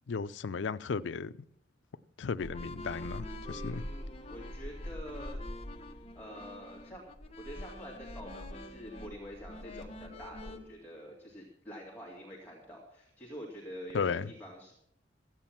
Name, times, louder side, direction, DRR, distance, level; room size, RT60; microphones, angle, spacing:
voice 1, 0.1-1.3 2.2-3.8 13.9-14.3, left 5 dB, 75° left, 0.5 m, -34 dB
sound 1, 2.4-10.6, left 1 dB, 35° left, 1.3 m, -43 dB
voice 2, 3.5-5.4 6.1-7.0 7.4-14.7, equal, 10° left, 2.2 m, -47 dB
14.0 x 9.0 x 5.9 m
head